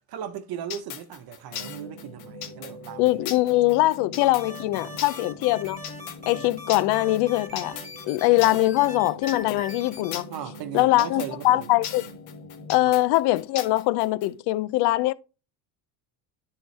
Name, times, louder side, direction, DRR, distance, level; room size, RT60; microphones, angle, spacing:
voice 1, 0.1-3.3 4.7-5.0 6.3-6.5 10.3-11.7 12.8-13.0, right 9 dB, 50° right, 1.0 m, -38 dB
sound 1, 0.7-14.3, left 9 dB, 75° left, 1.2 m, -38 dB
sound 2, 1.5-12.8, equal, 40° left, 2.2 m, -44 dB
voice 2, 3.0-5.8 6.3-7.8 8.1-10.3 10.7-12.0 12.7-15.1, left 17 dB, 55° left, 0.6 m, -22 dB
sound 3, 4.2-10.2, left 1 dB, 15° left, 2.7 m, -41 dB
10.0 x 3.8 x 3.3 m
hypercardioid pair, 80°, 48 cm